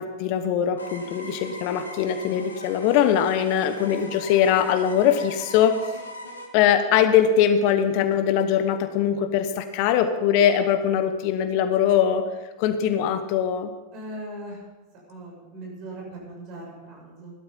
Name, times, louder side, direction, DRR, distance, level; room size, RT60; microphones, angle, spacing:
voice 1, 0.0-6.0 6.5-12.2 12.6-13.7, left 9 dB, 45° left, 10 dB, 0.9 m, -21 dB
sound 1, 0.8-6.5, left 2 dB, 75° left, 1.8 m, -40 dB
voice 2, 13.9-14.6 15.1-17.3, right 1 dB, 40° right, -1 dB, 6.5 m, -39 dB
16.5 x 12.0 x 5.4 m, 1.2 s
figure-of-eight pair, 90°, 0 cm